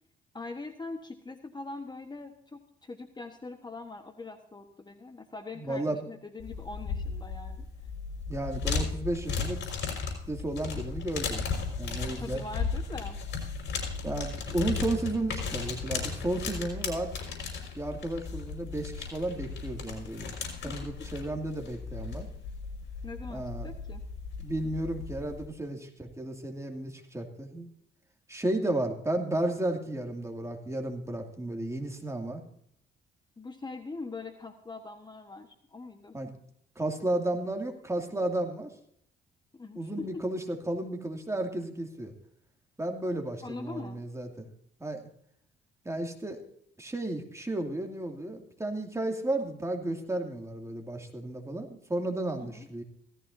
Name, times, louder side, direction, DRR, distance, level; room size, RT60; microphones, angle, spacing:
voice 1, 0.3-7.6 12.2-13.2 20.6-20.9 23.0-24.0 33.4-36.2 39.5-40.2 43.4-44.0 52.4-52.7, left 3 dB, 20° left, 6 dB, 1.3 m, -42 dB
voice 2, 5.6-6.0 8.3-9.6 10.1-11.4 11.8-12.4 14.0-17.1 17.8-20.3 20.6-22.3 23.3-23.7 24.4-27.7 28.3-32.4 36.1-36.3 36.8-38.7 39.7-42.1 42.8-44.5 44.8-45.0 45.8-46.4 46.8-52.8, right 1 dB, 15° right, 3 dB, 2.5 m, -33 dB
sound 1, 6.4-25.5, left 5 dB, 65° left, 5.5 m, -36 dB
17.0 x 14.5 x 2.7 m, 0.68 s
cardioid pair, 90°, 20 cm